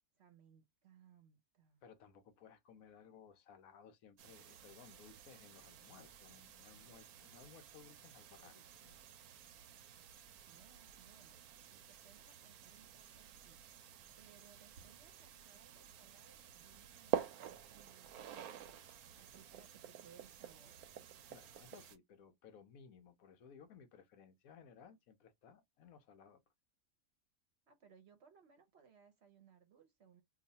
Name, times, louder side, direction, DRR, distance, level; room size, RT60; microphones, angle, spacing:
voice 1, 0.1-1.8 10.4-11.4 11.7-13.6 14.2-20.8 27.7-30.2, right 7 dB, 55° right, 0.8 m, -66 dB
voice 2, 1.8-9.0 21.3-26.4, left 6 dB, 75° left, 1.1 m, -60 dB
sound 1, 4.2-22.0, right 10 dB, 90° right, 1.1 m, -49 dB
3.0 x 2.4 x 4.0 m
omnidirectional pair, 1.6 m